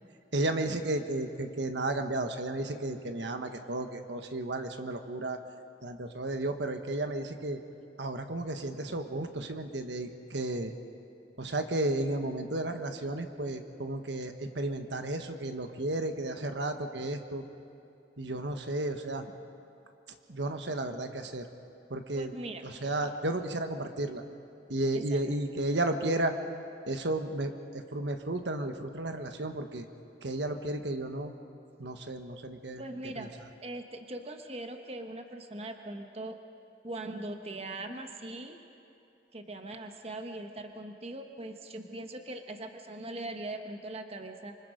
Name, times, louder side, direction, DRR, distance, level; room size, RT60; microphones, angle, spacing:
voice 1, 0.3-5.4 5.8-7.6 8.0-10.7 11.4-17.4 18.2-19.3 20.3-21.5 21.9-22.3 22.6-24.2 24.7-26.3 26.9-29.9 30.2-31.3 31.8-33.3, right 2 dB, 75° right, 6 dB, 1.3 m, -33 dB
voice 2, 22.2-22.6 24.9-25.2 32.8-33.3 33.6-36.4 36.8-38.6 39.3-44.6, right 2 dB, 35° right, 5 dB, 1.1 m, -41 dB
26.5 x 24.5 x 5.2 m, 2.6 s
head